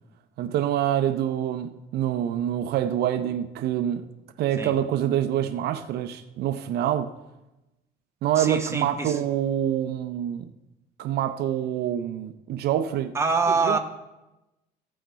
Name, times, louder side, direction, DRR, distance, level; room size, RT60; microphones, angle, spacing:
voice 1, 0.4-4.0 4.4-7.1 8.2-10.5 11.0-13.1 13.5-13.8, right 10 dB, 75° right, 0.6 m, -26 dB
voice 2, 8.4-9.2 13.1-13.8, right 4 dB, 15° right, 1.1 m, -25 dB
15.0 x 6.4 x 4.5 m
cardioid pair, 110°, 17 cm